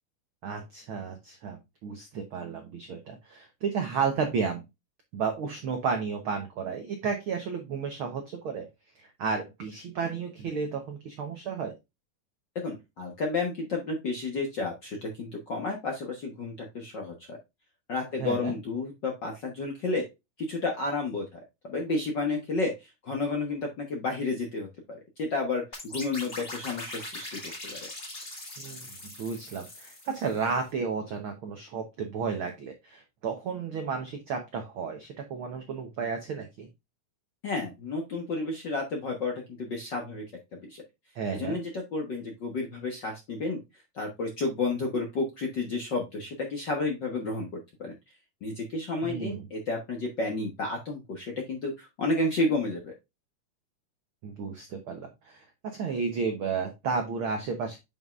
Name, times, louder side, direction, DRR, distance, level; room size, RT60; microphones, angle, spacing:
voice 1, 0.4-4.6 5.1-8.7 8.9-11.7 18.2-18.5 28.6-36.7 41.1-41.6 49.0-49.5 54.2-57.8, right 5 dB, 85° right, 5 dB, 1.1 m, -32 dB
voice 2, 12.6-17.4 17.9-20.0 20.4-27.9 37.4-40.2 40.6-40.8 41.3-43.6 43.9-47.5 47.8-47.9 48.4-52.9, left 3 dB, 55° left, 1 dB, 1.2 m, -31 dB
sound 1, 25.7-30.5, left 1 dB, 25° left, 1.4 m, -41 dB
7.7 x 5.4 x 2.4 m, 0.22 s
omnidirectional pair, 3.7 m